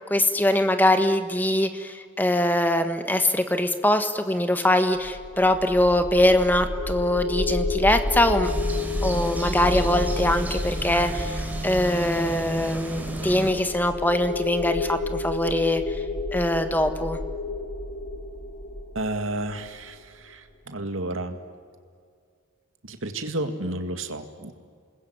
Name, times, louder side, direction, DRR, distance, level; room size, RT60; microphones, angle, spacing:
voice 1, 0.1-8.5 9.0-15.8 16.3-17.2, left 1 dB, 10° left, 8 dB, 1.5 m, -22 dB
sound 1, 5.0-20.1, left 2 dB, 90° left, 5.1 m, -31 dB
sound 2, 8.4-13.5, right 2 dB, 10° right, 3.7 m, -34 dB
voice 2, 19.0-21.4 22.8-24.5, right 1 dB, 80° right, 7 dB, 2.1 m, -31 dB
29.0 x 21.0 x 9.7 m, 2.1 s
head